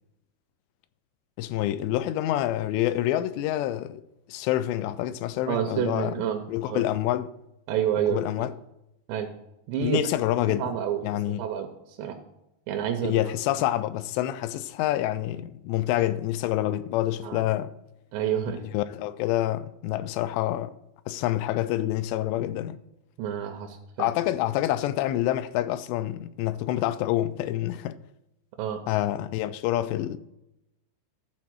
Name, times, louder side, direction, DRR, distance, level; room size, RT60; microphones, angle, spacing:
voice 1, 1.4-4.0 4.3-6.2 6.5-7.3 8.1-8.5 9.8-10.7 11.0-11.4 13.0-17.7 18.5-20.7 21.1-22.8 24.0-28.0 28.9-30.2, left 13 dB, 85° left, 2.7 m, -27 dB
voice 2, 5.5-6.8 7.7-8.5 9.1-9.3 9.7-10.0 10.4-11.0 11.4-12.2 12.7-13.2 17.2-17.4 18.1-18.6 23.2-24.1 28.6-28.8, right 9 dB, 80° right, 3.0 m, -29 dB
12.0 x 4.4 x 6.1 m
omnidirectional pair, 5.0 m